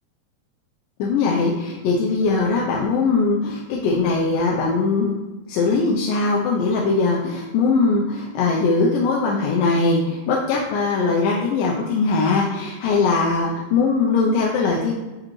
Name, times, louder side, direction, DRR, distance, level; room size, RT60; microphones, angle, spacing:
voice 1, 1.0-5.2 5.5-14.9, left 4 dB, 75° left, -2 dB, 2.2 m, -20 dB
6.2 x 5.0 x 3.1 m, 1.2 s
omnidirectional pair, 4.2 m